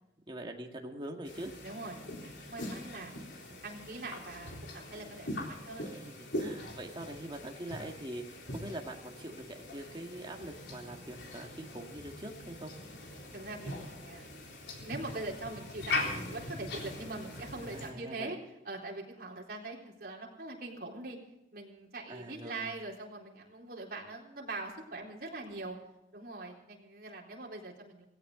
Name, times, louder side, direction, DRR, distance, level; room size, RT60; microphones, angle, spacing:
voice 1, 0.3-1.5 5.9-12.7 17.7-18.3 22.1-22.7, right 1 dB, 25° right, 2 dB, 2.1 m, -43 dB
sound 1, 1.3-17.9, left 2 dB, 80° left, 3.7 m, -41 dB
voice 2, 1.6-3.1 3.5-5.9 13.3-14.3 14.7-18.4 18.6-21.2 21.5-25.8 26.1-28.0, right 2 dB, 55° right, -2 dB, 4.0 m, -42 dB
17.5 x 17.0 x 3.9 m, 0.86 s
head